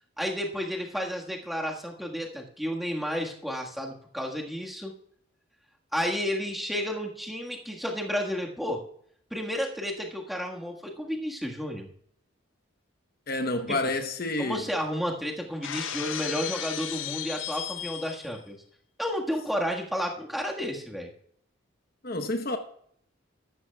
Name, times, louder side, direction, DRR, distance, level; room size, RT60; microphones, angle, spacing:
voice 1, 0.2-4.9 5.9-8.8 9.3-11.9 13.7-13.8 14.4-18.6 19.0-21.1, equal, ahead, 1.5 m, -31 dB
voice 2, 13.3-14.6 22.0-22.6, left 2 dB, 45° left, 0.9 m, -29 dB
Shatter, 15.6-18.4, left 11 dB, 70° left, 0.6 m, -35 dB
14.0 x 12.0 x 2.3 m
head